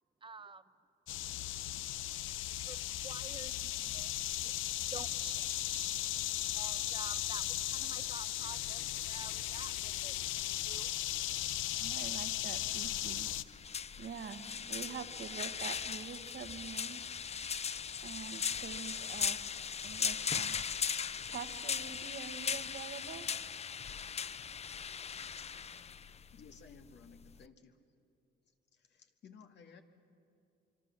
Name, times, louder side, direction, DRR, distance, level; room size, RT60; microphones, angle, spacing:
voice 1, 0.2-0.7 2.7-10.9, right 4 dB, 25° right, 13 dB, 0.9 m, -51 dB
sound 1, 1.1-13.4, left 13 dB, 85° left, 0.6 m, -37 dB
voice 2, 11.8-13.3 14.0-17.0 18.0-19.5 19.8-20.6 20.9-23.3, right 7 dB, 60° right, 9 dB, 1.5 m, -46 dB
sound 2, 12.8-27.5, left 7 dB, 30° left, 0.5 m, -39 dB
voice 3, 26.3-27.8 28.7-29.8, left 5 dB, 60° left, 5 dB, 2.0 m, -57 dB
25.5 x 24.5 x 7.5 m, 2.5 s
cardioid pair, 90°, 20 cm